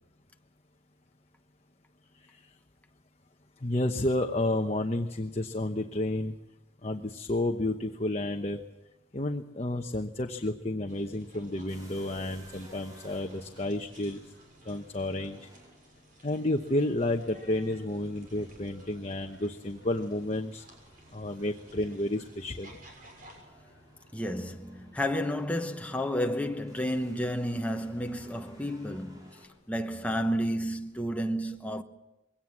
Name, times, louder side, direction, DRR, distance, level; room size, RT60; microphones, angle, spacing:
voice 1, 3.6-6.3 6.8-8.6 9.1-14.2 14.7-15.4 16.2-20.6 21.1-22.7, left 1 dB, 35° left, 1.0 m, -31 dB
sound 1, 10.9-23.4, right 1 dB, 45° right, 6.6 m, -57 dB
sound 2, 11.7-29.5, equal, 20° right, 5.6 m, -57 dB
voice 2, 24.1-31.8, equal, 5° left, 1.1 m, -31 dB
22.5 x 17.5 x 7.4 m
head